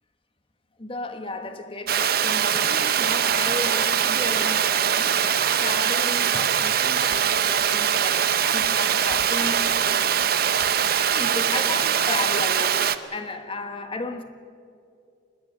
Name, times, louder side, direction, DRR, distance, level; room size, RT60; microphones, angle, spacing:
voice 1, 0.8-10.3 11.1-14.2, left 2 dB, 30° left, 1.3 m, -34 dB
Water, 1.9-13.0, right 8 dB, 50° right, 0.7 m, -22 dB
Breathing, 2.5-4.9 5.2-5.6 6.1-7.6 7.9-10.7 11.0-11.6, right 1 dB, 5° right, 2.3 m, -41 dB
25.0 x 20.5 x 6.3 m
head